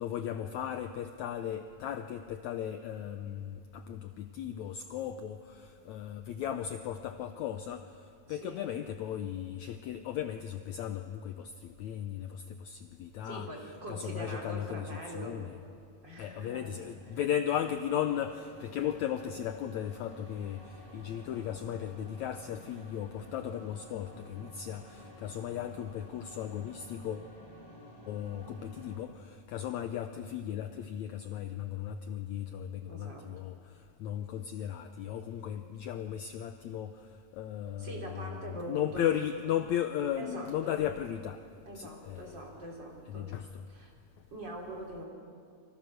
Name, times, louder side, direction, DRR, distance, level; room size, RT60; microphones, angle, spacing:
voice 1, 0.0-15.6 16.2-27.3 28.1-38.4 38.7-41.4 41.8-42.4 43.1-43.6, left 10 dB, 80° left, 8 dB, 1.7 m, -36 dB
voice 2, 8.3-8.7 13.2-15.5 16.0-16.8 32.9-33.3 37.8-39.1 40.2-40.8 41.7-43.4 43.7-43.9 44.3-45.0, right 1 dB, 30° right, -1 dB, 4.1 m, -43 dB
sound 1, 16.4-29.0, equal, 5° left, 7.3 m, -53 dB
30.0 x 24.5 x 6.5 m, 2.4 s
omnidirectional pair, 4.1 m